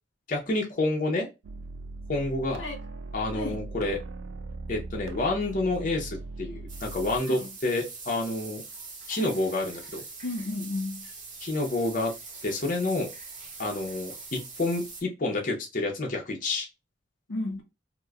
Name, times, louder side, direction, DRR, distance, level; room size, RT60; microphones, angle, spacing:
voice 1, 0.3-1.3 2.1-2.6 3.1-4.0 4.7-8.6 9.1-10.0 11.4-12.1 12.4-13.1 13.6-16.7, left 2 dB, 45° left, 0.7 m, -29 dB
sound 1, 1.4-7.2, right 3 dB, 80° right, 0.3 m, -39 dB
voice 2, 3.3-3.6 7.3-7.5 10.2-11.1 17.3-17.6, left 2 dB, 85° left, 0.7 m, -33 dB
sound 2, 6.7-15.0, right 4 dB, 40° right, 0.9 m, -43 dB
2.9 x 2.1 x 2.3 m
head